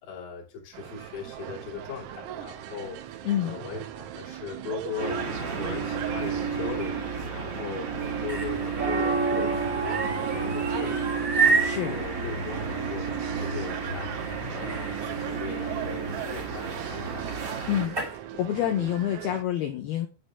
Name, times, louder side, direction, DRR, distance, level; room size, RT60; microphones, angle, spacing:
voice 1, 0.0-7.0 7.3-10.0 10.3-11.2 11.5-17.4, left 6 dB, 45° left, -2 dB, 3.7 m, -39 dB
sound 1, 0.7-19.4, right 12 dB, 85° right, 3.6 m, -39 dB
voice 2, 3.2-3.6 11.6-12.0 17.7-18.0 18.4-20.1, left 11 dB, 85° left, 5 dB, 2.2 m, -27 dB
sound 2, 5.0-17.9, right 4 dB, 45° right, 2.1 m, -31 dB
sound 3, 8.0-18.2, right 4 dB, 15° right, 2.1 m, -32 dB
9.9 x 8.5 x 3.6 m, 0.31 s
omnidirectional pair, 5.8 m